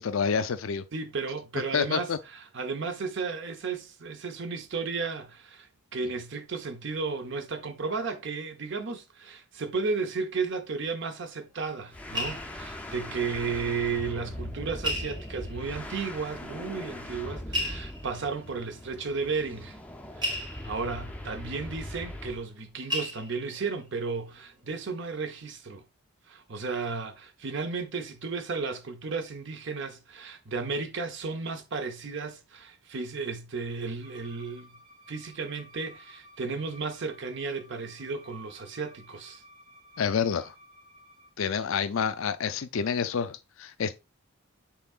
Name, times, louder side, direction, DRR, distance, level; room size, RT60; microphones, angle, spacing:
voice 1, 0.0-0.8 1.7-2.2 40.0-40.5 41.4-43.9, left 6 dB, 70° left, 0.5 m, -28 dB
voice 2, 0.9-19.8 20.2-25.8 26.3-34.8 35.1-39.4, right 4 dB, 55° right, 0.7 m, -34 dB
sound 1, 11.5-13.8 14.0-14.1 14.8-15.8 16.6-16.7 17.4-22.6 22.9-23.8 24.3-24.6 24.8-25.0, left 1 dB, 20° right, 0.9 m, -36 dB
sound 2, 11.9-22.4, left 1 dB, 5° left, 0.5 m, -40 dB
Bowed string instrument, 34.0-41.3, equal, 40° right, 2.0 m, -55 dB
5.8 x 3.7 x 2.4 m
head